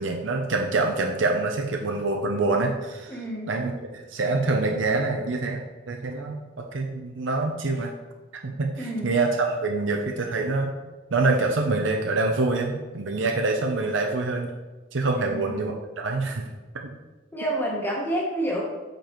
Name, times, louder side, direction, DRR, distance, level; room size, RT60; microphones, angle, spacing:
voice 1, 0.0-5.6 5.9-7.9 8.3-10.7 11.1-14.5 14.9-16.4 16.8-16.9, right 3 dB, 75° right, 3 dB, 0.6 m, -26 dB
voice 2, 3.1-3.5 8.8-9.1 15.1-15.6 17.3-18.6, right 1 dB, 10° left, -3 dB, 1.0 m, -29 dB
8.7 x 5.3 x 3.1 m, 1.2 s
head